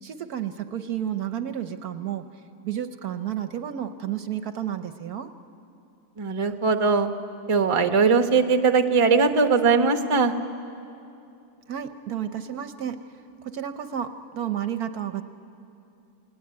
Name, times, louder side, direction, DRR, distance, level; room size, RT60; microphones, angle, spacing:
voice 1, 0.0-2.2 2.6-5.3 11.7-13.0 13.4-15.2, right 10 dB, 65° right, 9 dB, 1.2 m, -31 dB
voice 2, 6.2-7.1 7.5-10.3, right 5 dB, 25° right, 6 dB, 0.8 m, -20 dB
28.5 x 18.5 x 9.6 m, 2.7 s
omnidirectional pair, 1.9 m